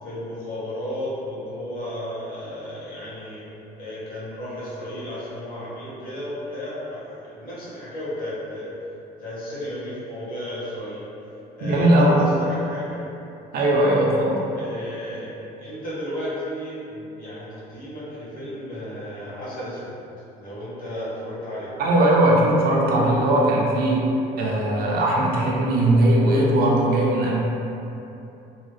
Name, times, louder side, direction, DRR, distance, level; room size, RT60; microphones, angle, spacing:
voice 1, 0.0-3.4 3.8-8.7 9.2-11.0 11.5-13.0 14.6-15.3 15.6-19.9 20.4-21.7, left 1 dB, 60° left, -10 dB, 1.5 m, -33 dB
voice 2, 11.6-12.2 13.5-14.4 21.8-24.0 24.4-27.4, right 1 dB, 60° right, -3 dB, 0.6 m, -19 dB
3.1 x 2.3 x 3.1 m, 2.9 s
cardioid pair, 110°, 17 cm